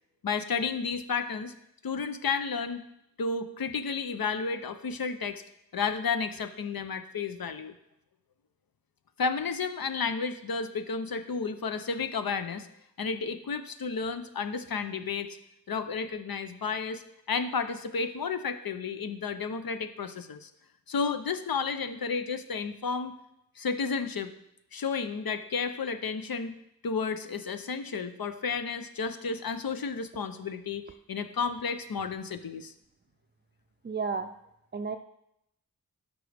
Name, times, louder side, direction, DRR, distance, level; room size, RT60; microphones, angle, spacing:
voice 1, 0.2-1.5 1.8-2.8 3.2-5.4 5.7-7.7 9.2-12.7 13.0-15.4 15.7-17.0 17.3-20.5 20.9-23.1 23.6-24.3 24.7-26.6 26.8-30.8 31.1-32.7, left 5 dB, 75° left, 10 dB, 0.6 m, -32 dB
voice 2, 33.8-34.3 34.7-35.0, right 5 dB, 30° right, 5 dB, 0.4 m, -31 dB
12.5 x 5.2 x 3.4 m, 0.81 s
wide cardioid pair, 65°, 35 cm